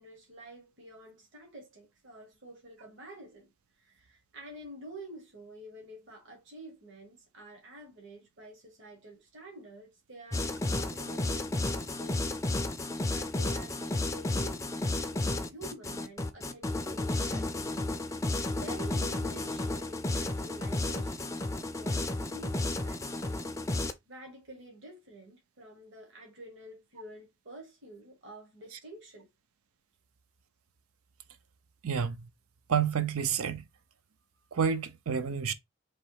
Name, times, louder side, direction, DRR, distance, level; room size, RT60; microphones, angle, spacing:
voice 1, 0.0-3.5 3.8-12.5 12.8-14.7 15.1-17.7 18.5-29.3, right 1 dB, 55° right, 1.3 m, -49 dB
sound 1, 10.3-23.9, left 2 dB, 15° left, 0.4 m, -32 dB
voice 2, 31.8-32.3 32.7-33.6 34.5-35.5, right 7 dB, 80° right, 0.6 m, -29 dB
3.3 x 2.8 x 4.6 m
head